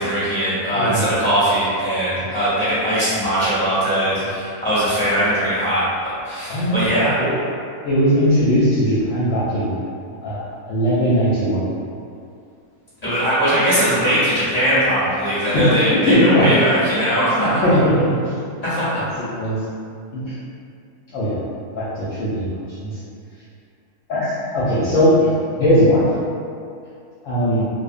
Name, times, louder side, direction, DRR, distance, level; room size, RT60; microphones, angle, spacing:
voice 1, 0.0-7.2 13.0-17.6 18.6-19.0, equal, 35° left, -13 dB, 0.8 m, -20 dB
voice 2, 0.7-1.1 4.2-4.3 6.5-7.3 7.8-9.7 10.2-11.6 15.5-15.6 16.1-16.5 17.4-18.1 19.2-19.6 20.1-20.3 21.1-21.4 21.8-22.5 22.8-23.0 24.1-25.3 25.6-26.1 27.2-27.7, equal, 70° left, -10 dB, 0.9 m, -19 dB
2.6 x 2.1 x 2.4 m, 2.4 s
omnidirectional pair, 1.6 m